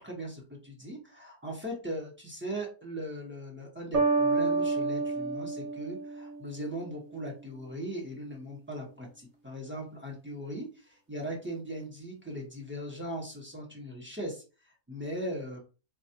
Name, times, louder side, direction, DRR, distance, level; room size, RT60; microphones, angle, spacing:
voice 1, 0.0-14.4 14.9-15.6, right 1 dB, 10° right, -2 dB, 0.8 m, -39 dB
sound 1, 3.9-6.8, right 3 dB, 70° right, 1.4 m, -29 dB
4.1 x 2.4 x 2.8 m, 0.33 s
omnidirectional pair, 1.6 m